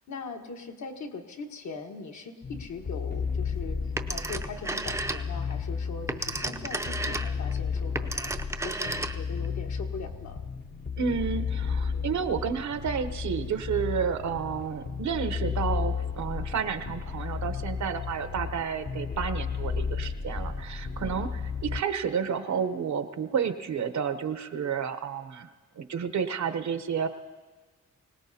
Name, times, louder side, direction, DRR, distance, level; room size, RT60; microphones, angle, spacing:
voice 1, 0.0-10.4 21.0-21.3, left 4 dB, 70° left, 3 dB, 1.4 m, -41 dB
sound 1, 2.4-21.8, left 5 dB, 35° left, 0.7 m, -33 dB
Telephone, 4.0-5.5 5.9-9.5, right 2 dB, 10° right, 0.5 m, -33 dB
voice 2, 11.0-25.5 25.8-27.1, right 7 dB, 70° right, 9 dB, 0.9 m, -31 dB
25.0 x 18.0 x 2.8 m, 1.4 s
wide cardioid pair, 120°, 30 cm